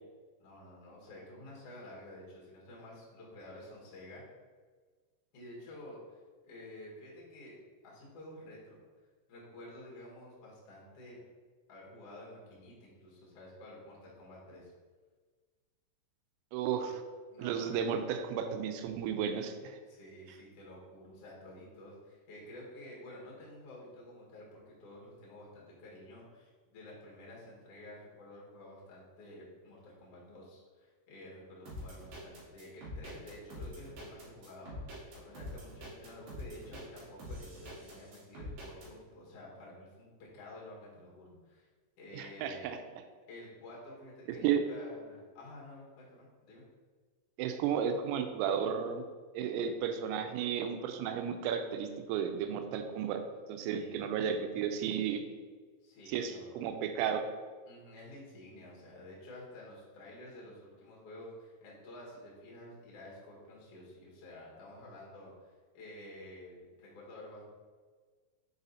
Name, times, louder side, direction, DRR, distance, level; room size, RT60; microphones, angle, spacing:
voice 1, 0.4-4.2 5.3-7.6 7.8-8.8 9.3-11.2 11.7-14.7 16.8-16.9 17.3-17.8 19.9-41.7 42.0-42.7 43.3-46.6 53.7-54.3 55.8-56.8 57.7-67.5, left 1 dB, 70° left, -5 dB, 1.4 m, -51 dB
voice 2, 16.5-17.0 17.4-19.8 42.1-42.8 44.4-44.6 47.4-49.0 49.4-53.2 53.5-55.2 56.1-57.2, right 8 dB, 90° right, 7 dB, 3.2 m, -33 dB
sound 1, 31.7-38.9, left 1 dB, 55° right, 3.1 m, -45 dB
7.4 x 4.1 x 4.0 m, 1.5 s
omnidirectional pair, 5.8 m